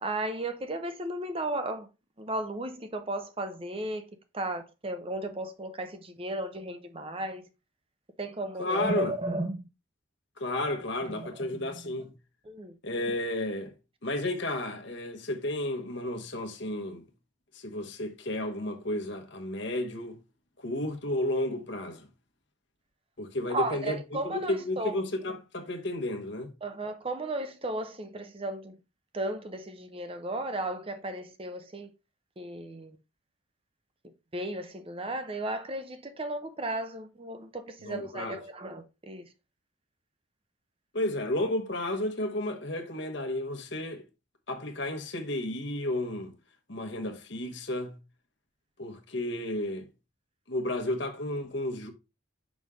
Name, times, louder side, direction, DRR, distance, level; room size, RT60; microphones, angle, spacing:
voice 1, 0.0-1.9 2.2-4.0 4.3-7.5 8.2-9.7 11.1-11.6 12.4-12.8 23.5-25.0 26.6-28.8 29.1-31.9 32.4-33.0 34.3-39.2, right 1 dB, 25° right, 0.7 m, -34 dB
voice 2, 8.6-9.1 10.4-12.1 12.8-13.7 14.0-17.1 17.5-20.2 20.6-22.1 23.2-24.0 24.2-26.5 37.8-38.4 40.9-44.0 44.5-46.3 46.7-48.0 48.8-49.9 50.5-51.9, left 1 dB, 60° left, 1.2 m, -32 dB
6.1 x 5.4 x 3.6 m
head